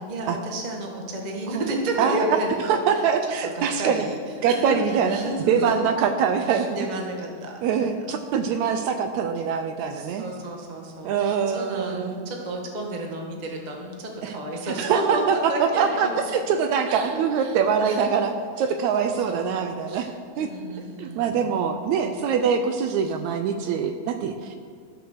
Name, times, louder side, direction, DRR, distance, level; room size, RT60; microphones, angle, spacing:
voice 1, 0.0-3.0 3.4-4.2 4.5-5.8 6.4-8.0 9.9-16.2 16.9-18.1 18.6-18.7 19.0-19.5 19.9-20.1 20.3-21.5 23.0-23.1, right 1 dB, 50° right, 0 dB, 0.5 m, -32 dB
voice 2, 2.0-2.4 2.7-4.1 4.4-5.2 5.5-6.7 7.6-10.3 11.0-12.2 14.2-14.3 14.8-16.1 16.3-20.1 20.4-20.5 21.0-24.6, right 6 dB, 75° right, 7 dB, 1.9 m, -24 dB
12.5 x 6.9 x 6.6 m, 2.1 s
omnidirectional pair, 3.4 m